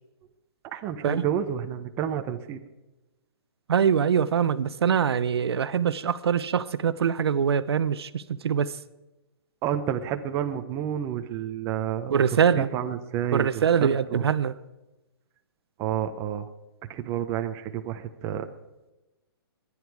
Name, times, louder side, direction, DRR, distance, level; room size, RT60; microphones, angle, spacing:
voice 1, 0.7-2.6 9.6-14.3 15.8-16.5 16.9-18.5, right 10 dB, 20° right, 0.7 m, -30 dB
voice 2, 3.7-8.7 12.1-12.7 13.3-14.5, right 7 dB, 75° right, 0.7 m, -23 dB
22.0 x 9.9 x 4.8 m
hypercardioid pair, 160°, 13 cm